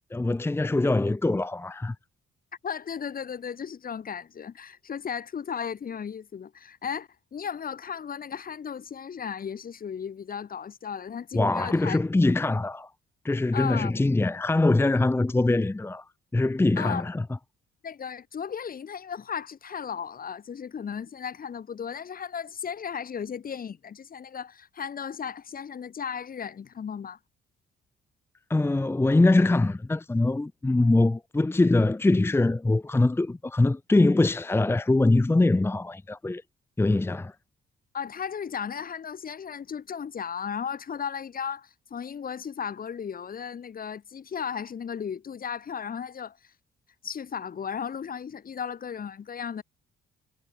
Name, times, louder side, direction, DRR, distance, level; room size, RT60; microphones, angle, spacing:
voice 1, 0.1-1.9 11.3-12.9 13.2-16.0 16.3-17.2 28.5-36.4 36.8-37.3, left 2 dB, 10° left, 0.8 m, -23 dB
voice 2, 2.6-12.0 12.3-12.4 13.5-13.9 16.8-17.1 17.8-27.2 37.9-46.4 47.0-49.6, left 7 dB, 45° left, 2.3 m, -35 dB
cardioid pair, 90°, 20 cm